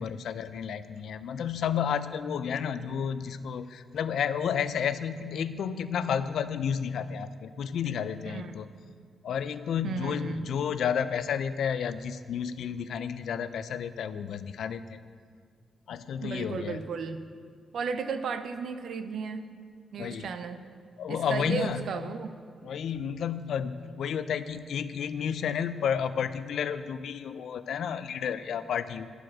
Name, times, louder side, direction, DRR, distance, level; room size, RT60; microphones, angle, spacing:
voice 1, 0.0-8.7 9.2-15.0 15.9-16.8 20.0-20.3 21.0-21.9 22.6-29.1, left 7 dB, 70° left, 12 dB, 0.3 m, -31 dB
voice 2, 8.3-8.6 9.8-10.5 16.2-17.2 17.7-19.5 19.9-20.6 21.1-22.3, right 5 dB, 60° right, 9 dB, 0.5 m, -34 dB
10.5 x 4.8 x 6.1 m, 2.1 s
wide cardioid pair, 170°, 0 cm